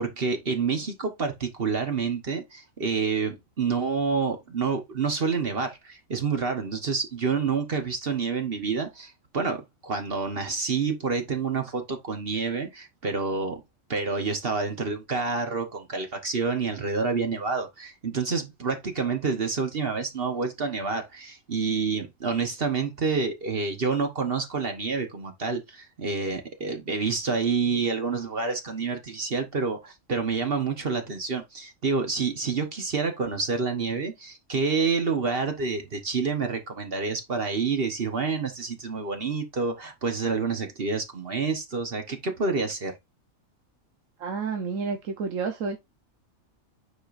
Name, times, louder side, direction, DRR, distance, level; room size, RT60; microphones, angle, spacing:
voice 1, 0.0-13.6 13.9-42.9, right 4 dB, 45° right, 1.3 m, -28 dB
voice 2, 44.2-45.8, right 5 dB, 70° right, 1.3 m, -30 dB
8.9 x 5.0 x 2.5 m
omnidirectional pair, 1.4 m